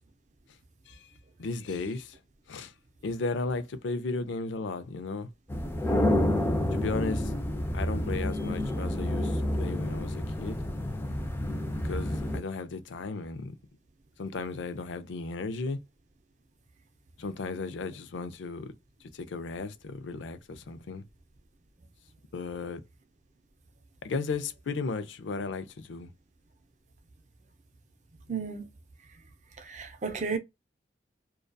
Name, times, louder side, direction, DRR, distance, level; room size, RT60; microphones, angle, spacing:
voice 1, 1.4-2.2 2.5-2.7 3.0-5.3 6.7-7.3 7.7-10.6 11.8-13.6 14.2-15.8 17.2-18.7 19.1-21.0 22.3-22.8 24.0-26.1, left 3 dB, 80° left, 0.4 m, -35 dB
sound 1, 5.5-12.4, left 1 dB, 15° left, 0.4 m, -29 dB
voice 2, 28.3-28.6 29.7-30.4, right 5 dB, 40° right, 0.5 m, -33 dB
2.6 x 2.2 x 2.2 m
head